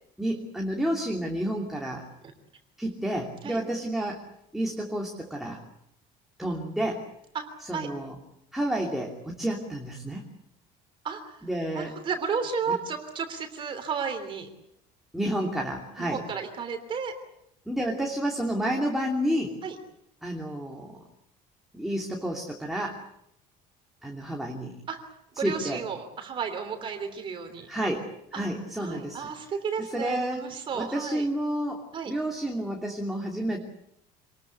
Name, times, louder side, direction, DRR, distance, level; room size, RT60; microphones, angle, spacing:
voice 1, 0.2-2.0 2.8-4.2 4.5-5.6 6.4-7.0 7.6-8.1 8.5-10.3 11.4-11.9 15.1-16.2 17.7-19.5 20.2-21.0 21.7-23.0 24.0-24.8 25.4-25.8 27.7-29.3 29.8-30.5 30.7-33.6, right 1 dB, ahead, -1 dB, 2.8 m, -30 dB
voice 2, 7.3-7.9 11.0-11.4 11.7-14.5 16.0-17.1 19.6-19.7 24.9-25.0 25.4-27.7 28.3-28.4 28.8-31.3 31.9-32.1, right 6 dB, 30° right, 6 dB, 3.3 m, -33 dB
27.0 x 21.0 x 8.4 m, 0.77 s
cardioid pair, 170°, 16 cm